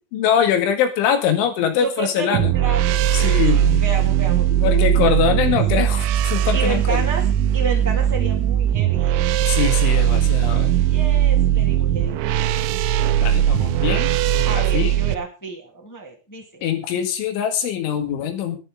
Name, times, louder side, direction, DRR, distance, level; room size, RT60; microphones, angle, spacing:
voice 1, 0.1-2.5 3.1-3.8 4.6-7.1 9.5-10.8 13.2-15.0 16.6-18.6, left 8 dB, 70° left, 6 dB, 4.3 m, -23 dB
voice 2, 1.7-5.1 5.4-5.6 6.5-7.2 7.5-9.4 10.9-12.3 14.4-16.6, right 4 dB, 10° left, 0 dB, 1.0 m, -31 dB
sound 1, 2.3-15.2, right 11 dB, 85° right, 3.6 m, -19 dB
20.0 x 10.5 x 3.7 m, 0.32 s
omnidirectional pair, 5.9 m